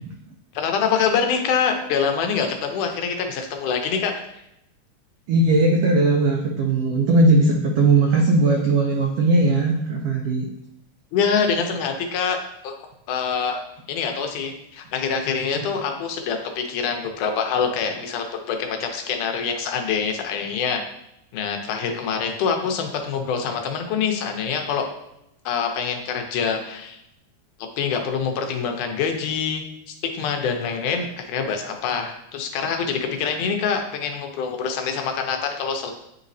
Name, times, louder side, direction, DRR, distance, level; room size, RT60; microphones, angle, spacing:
voice 1, 0.6-4.1 11.1-12.4 12.6-12.7 13.1-13.6 13.9-20.8 21.3-24.9 25.5-27.0 27.8-29.7 30.1-35.9, left 6 dB, 85° left, 4 dB, 2.3 m, -25 dB
voice 2, 5.3-10.5, right 2 dB, 80° right, 1 dB, 1.4 m, -18 dB
9.3 x 4.1 x 2.6 m, 0.81 s
omnidirectional pair, 3.5 m